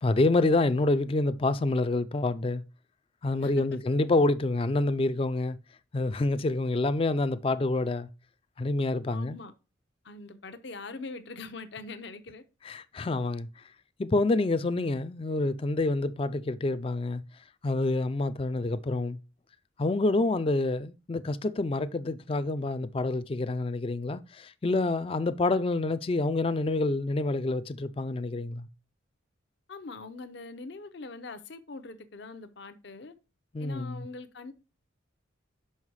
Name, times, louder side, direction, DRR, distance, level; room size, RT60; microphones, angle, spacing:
voice 1, 0.0-2.6 3.2-5.6 5.9-8.1 8.6-9.4 12.6-13.5 14.0-17.2 17.6-19.2 19.8-28.7 33.5-34.1, left 2 dB, 30° left, 0.3 m, -27 dB
voice 2, 3.4-3.8 9.1-9.5 10.0-12.4 29.7-33.1 33.6-34.5, left 3 dB, 60° left, 0.7 m, -42 dB
5.6 x 5.6 x 4.7 m
head